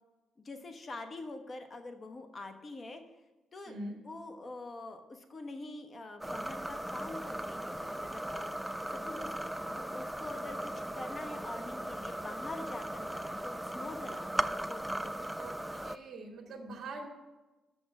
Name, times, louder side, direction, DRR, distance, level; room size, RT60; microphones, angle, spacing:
voice 1, 0.4-3.0 3.5-3.8 4.0-8.8 9.0-14.4 14.7-15.0, left 2 dB, 35° left, 7 dB, 1.1 m, -45 dB
voice 2, 3.7-4.0 15.4-17.1, right 2 dB, 50° right, 0 dB, 1.8 m, -43 dB
sound 1, 6.2-16.0, right 1 dB, 5° right, 0.3 m, -38 dB
6.7 x 6.3 x 7.4 m, 1.1 s
cardioid pair, 90°, 0 cm